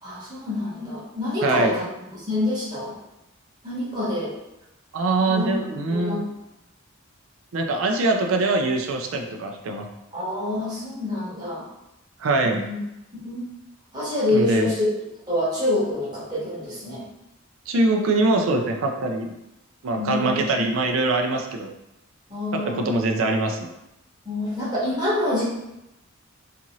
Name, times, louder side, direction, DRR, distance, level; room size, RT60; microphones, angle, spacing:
voice 1, 0.0-1.8 2.1-2.9 3.6-4.4 5.3-5.5 5.9-6.3 10.1-11.6 12.5-12.8 13.2-13.5 13.9-14.9 15.3-17.0 20.0-20.7 22.3-22.9 24.2-25.4, left 1 dB, 20° right, -9 dB, 1.1 m, -26 dB
voice 2, 1.4-1.8 4.9-6.2 7.5-9.9 12.2-12.6 14.3-14.7 17.7-19.3 19.8-21.7 22.5-23.7, right 2 dB, 75° right, 3 dB, 0.4 m, -23 dB
2.6 x 2.5 x 2.9 m, 0.90 s
head